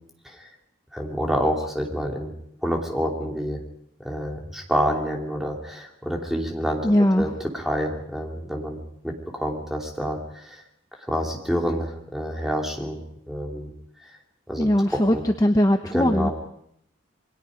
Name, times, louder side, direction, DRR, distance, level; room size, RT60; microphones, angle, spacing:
voice 1, 0.9-2.3 2.6-3.6 4.0-6.9 7.2-10.6 11.1-13.0 13.3-13.7 14.5-15.2 15.9-16.3, equal, ahead, 1 dB, 2.7 m, -28 dB
voice 2, 6.8-7.3 14.6-16.3, equal, 20° left, 6 dB, 0.8 m, -20 dB
28.0 x 21.5 x 5.1 m, 0.72 s
head